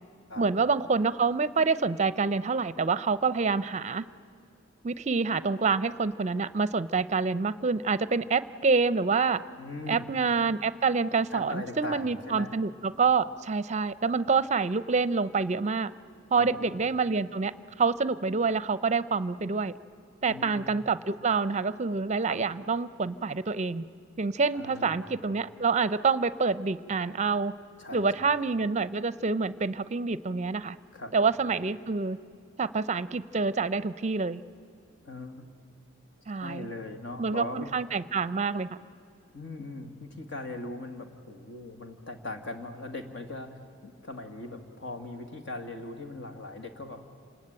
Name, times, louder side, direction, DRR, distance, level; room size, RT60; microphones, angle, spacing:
voice 1, 0.4-4.0 4.8-9.4 9.9-15.9 16.3-17.5 17.8-19.7 20.2-23.8 24.2-27.5 27.9-30.8 31.1-32.2 32.6-34.4 36.3-36.7 37.2-38.7, right 4 dB, 35° right, 16 dB, 0.6 m, -27 dB
voice 2, 9.6-10.1 11.3-12.6 14.0-14.1 16.3-16.7 20.2-20.7 22.3-22.4 24.5-25.0 27.8-28.3 30.9-31.3 35.0-35.5 36.3-37.7 39.3-47.1, left 2 dB, 60° left, 6 dB, 2.1 m, -40 dB
28.0 x 19.5 x 8.9 m, 2.5 s
head